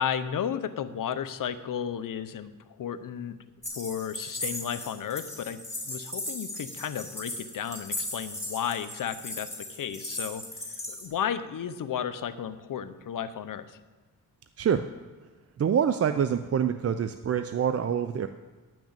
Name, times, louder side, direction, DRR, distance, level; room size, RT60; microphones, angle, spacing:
voice 1, 0.0-2.5 2.8-3.3 3.8-5.6 5.8-10.4 10.9-13.8, left 8 dB, 60° left, 11 dB, 0.8 m, -33 dB
sound 1, 3.6-11.1, left 1 dB, 10° left, 3.6 m, -37 dB
voice 2, 15.6-18.3, right 8 dB, 40° right, 10 dB, 0.5 m, -26 dB
10.5 x 6.1 x 8.8 m, 1.4 s
cardioid pair, 110°, 37 cm